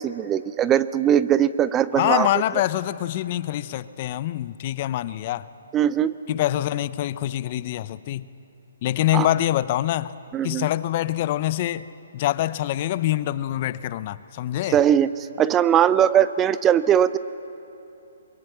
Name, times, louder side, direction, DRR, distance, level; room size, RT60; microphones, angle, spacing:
voice 1, 0.0-2.3 5.7-6.1 9.1-9.3 10.3-10.7 14.7-15.1 15.4-17.2, right 10 dB, 20° right, 15 dB, 0.5 m, -20 dB
voice 2, 2.0-5.5 6.3-8.3 8.8-10.1 10.4-11.8 12.1-14.8, left 14 dB, 40° left, 16 dB, 0.6 m, -25 dB
22.5 x 22.5 x 7.9 m, 3.0 s
hypercardioid pair, 140°, 0 cm